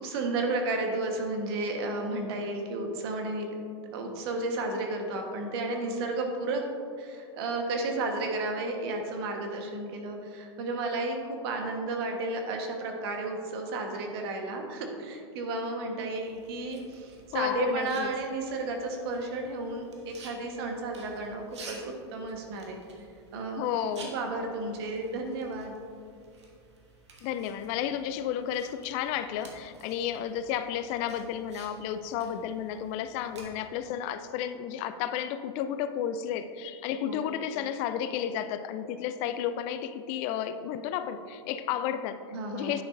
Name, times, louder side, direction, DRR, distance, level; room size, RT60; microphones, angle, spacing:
voice 1, 0.0-3.5 3.9-6.6 7.0-22.8 23.3-23.6 24.1-25.7 37.0-37.3 42.3-42.8, right 2 dB, 60° right, 3 dB, 1.3 m, -33 dB
sound 1, 16.1-33.4, right 3 dB, 85° right, 1.4 m, -53 dB
voice 2, 17.3-18.1 23.6-24.1 27.2-42.2 42.5-42.8, left 9 dB, 50° left, 11 dB, 0.4 m, -32 dB
9.7 x 6.4 x 2.6 m, 2.5 s
hypercardioid pair, 110°, 14 cm